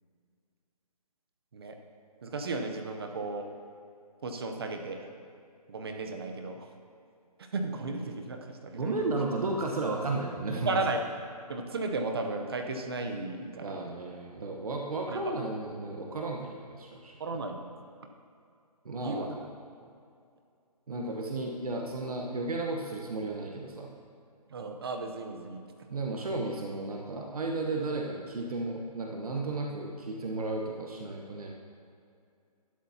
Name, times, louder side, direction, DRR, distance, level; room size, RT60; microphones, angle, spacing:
voice 1, 2.2-3.5 4.2-5.1 5.7-6.7 7.5-8.9 10.7-11.0 11.5-13.9 15.1-15.4 17.2-17.6 19.0-19.3 24.5-25.6, right 3 dB, 40° right, 4 dB, 0.8 m, -34 dB
voice 2, 8.7-10.7 13.6-17.1 18.8-19.4 20.9-23.9 25.9-31.5, right 2 dB, 65° right, 0 dB, 1.2 m, -34 dB
12.0 x 10.5 x 2.9 m, 2.4 s
hypercardioid pair, 165°, 20 cm